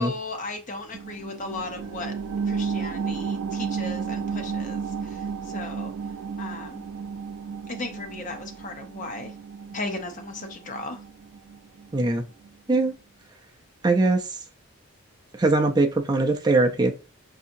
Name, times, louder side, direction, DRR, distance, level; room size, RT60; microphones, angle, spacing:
voice 1, 0.0-2.2 2.4-5.9 6.4-6.8 7.7-9.3 9.7-11.0, left 2 dB, 35° left, 0.6 m, -36 dB
sound 1, 0.9-12.0 12.4-12.5, right 6 dB, 85° right, 0.3 m, -33 dB
voice 2, 11.9-12.2 12.7-12.9 13.8-14.3 15.4-16.9, right 2 dB, 20° right, 0.4 m, -21 dB
4.7 x 2.8 x 2.6 m
head